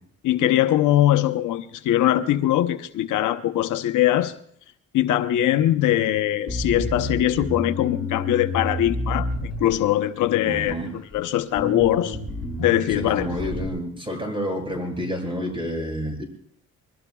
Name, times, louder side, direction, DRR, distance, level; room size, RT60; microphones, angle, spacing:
voice 1, 0.2-4.3 4.9-10.8 11.1-12.2 12.6-13.3, left 13 dB, 80° left, 10 dB, 0.8 m, -21 dB
Bass guitar, 6.5-10.1 10.7-11.2 11.6-13.7, left 1 dB, ahead, 7.6 m, -30 dB
voice 2, 10.4-10.9 12.9-16.2, equal, 15° right, 2 dB, 7.7 m, -29 dB
26.5 x 21.5 x 2.3 m, 0.63 s
cardioid pair, 90°, 30 cm